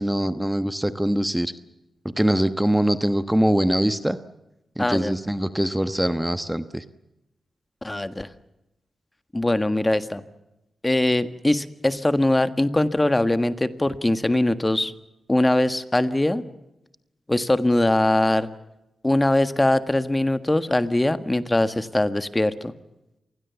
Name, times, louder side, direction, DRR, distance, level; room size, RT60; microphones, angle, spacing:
voice 1, 0.0-1.5 2.2-4.2 4.8-6.8, right 1 dB, 5° right, 10 dB, 1.2 m, -23 dB
voice 2, 4.8-5.1 7.8-8.3 9.3-10.2 10.8-14.9 15.3-16.4 17.3-18.5 19.0-22.7, left 1 dB, 20° left, 11 dB, 1.6 m, -21 dB
26.5 x 20.5 x 7.1 m, 0.94 s
cardioid pair, 55°, 0 cm